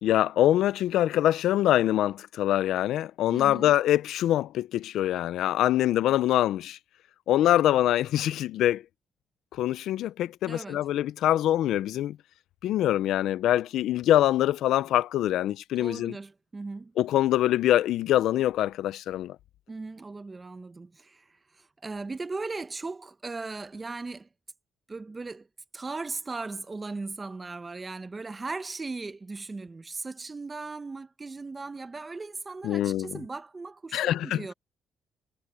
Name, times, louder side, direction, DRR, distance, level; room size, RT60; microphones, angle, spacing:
voice 1, 0.0-6.8 7.3-8.8 9.5-12.2 12.6-16.2 17.0-19.4 32.6-33.2 33.9-34.4, left 13 dB, 85° left, 0.6 m, -24 dB
voice 2, 3.3-3.7 10.4-10.8 15.8-16.9 19.7-21.2 21.5-24.3 24.9-25.5 25.7-34.5, right 3 dB, 25° right, 1.1 m, -38 dB
cardioid pair, 90°, 0 cm